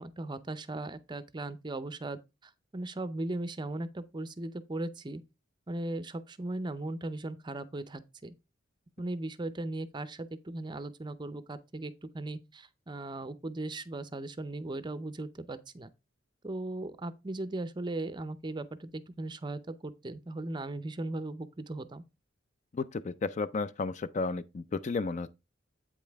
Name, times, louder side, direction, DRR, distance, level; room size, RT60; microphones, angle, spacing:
voice 1, 0.0-5.2 5.7-8.3 9.0-15.9 16.4-22.0, right 2 dB, 25° right, 0.5 m, -38 dB
voice 2, 22.7-25.3, left 4 dB, 35° left, 0.4 m, -33 dB
8.4 x 5.2 x 3.4 m
head